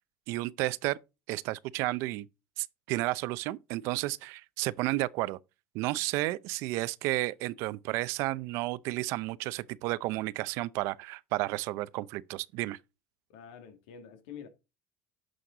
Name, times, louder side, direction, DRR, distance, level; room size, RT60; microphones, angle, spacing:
voice 1, 0.3-1.0 1.3-2.3 2.6-5.4 5.7-12.8, right 19 dB, 70° right, 0.5 m, -32 dB
voice 2, 13.3-14.5, left 7 dB, 85° left, 2.2 m, -47 dB
11.5 x 6.4 x 3.9 m
supercardioid pair, 120°, 5 cm